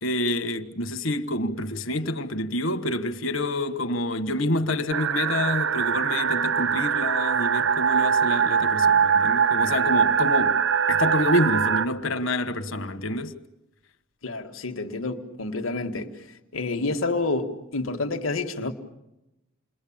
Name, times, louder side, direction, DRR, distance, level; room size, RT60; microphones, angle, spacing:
voice 1, 0.0-10.6 10.9-13.3, left 1 dB, 75° left, 1.4 m, -27 dB
sound 1, 4.9-11.9, right 7 dB, 80° right, 1.2 m, -22 dB
voice 2, 14.2-16.1 16.5-18.7, left 3 dB, 90° left, 1.8 m, -28 dB
29.0 x 21.5 x 8.8 m
head